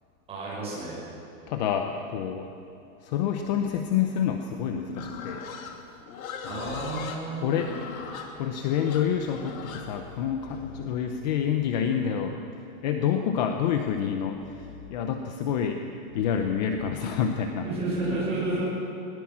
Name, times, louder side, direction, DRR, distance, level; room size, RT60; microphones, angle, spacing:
voice 1, 0.3-1.0 6.5-7.6 17.6-18.6, right 2 dB, 15° right, -6 dB, 7.1 m, -31 dB
voice 2, 1.5-2.5 3.0-5.5 6.4-7.0 7.4-7.7 8.4-12.4 12.8-15.8 16.1-17.7, left 8 dB, 30° left, 6 dB, 0.8 m, -28 dB
Livestock farm animals working animals, 4.9-11.0, left 6 dB, 70° left, 3.0 m, -39 dB
20.0 x 19.0 x 7.5 m, 2.8 s
supercardioid pair, 175°, 43 cm